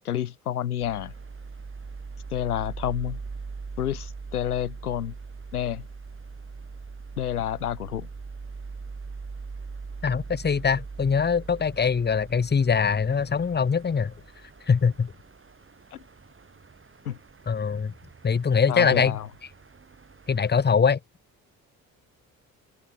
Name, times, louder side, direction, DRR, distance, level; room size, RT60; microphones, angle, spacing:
voice 1, 0.0-1.1 2.3-3.2 3.8-5.2 5.5-5.9 7.2-8.1 15.9-16.0 17.0-17.2 18.7-19.3, left 11 dB, 85° left, 1.1 m, -29 dB
sound 1, 0.8-20.7, right 4 dB, 30° right, 4.4 m, -41 dB
voice 2, 10.0-14.1 14.7-15.1 17.5-17.9 18.2-19.1 20.3-21.0, left 6 dB, 25° left, 1.2 m, -22 dB
open air
figure-of-eight pair, 45°, 44 cm